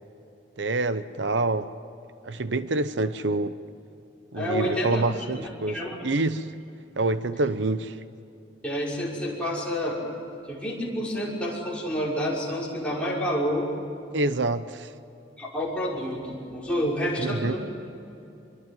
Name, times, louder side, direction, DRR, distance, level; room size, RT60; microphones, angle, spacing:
voice 1, 0.6-1.7 2.2-3.6 4.3-6.5 7.0-8.0 14.1-14.9 17.2-17.5, right 2 dB, 85° right, 0.9 m, -26 dB
voice 2, 4.3-5.0 5.4-6.1 8.6-10.1 10.5-13.7 15.4-17.6, equal, 5° left, 5.9 m, -29 dB
26.5 x 23.0 x 9.3 m
head